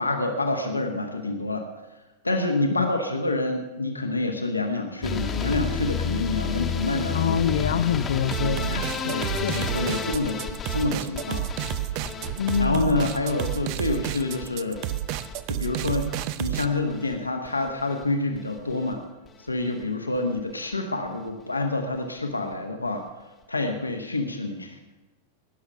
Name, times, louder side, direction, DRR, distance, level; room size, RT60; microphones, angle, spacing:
voice 1, 0.0-1.7 2.2-7.4 8.7-11.5 12.6-14.8 15.5-16.1 16.4-19.0 19.4-23.0 23.5-24.8, left 2 dB, 80° left, 4 dB, 1.1 m, -27 dB
sound 1, 5.0-17.1 17.4-18.0 18.3-18.9 19.3-19.5 19.8-19.9 20.2-20.3, left 5 dB, 20° left, 1.2 m, -32 dB
voice 2, 7.1-9.7 12.4-13.1, left 8 dB, 65° left, 8 dB, 0.5 m, -26 dB
sound 2, 8.3-16.7, right 13 dB, 45° right, 0.5 m, -30 dB
19.0 x 7.1 x 5.6 m, 1.1 s
figure-of-eight pair, 90°, 0 cm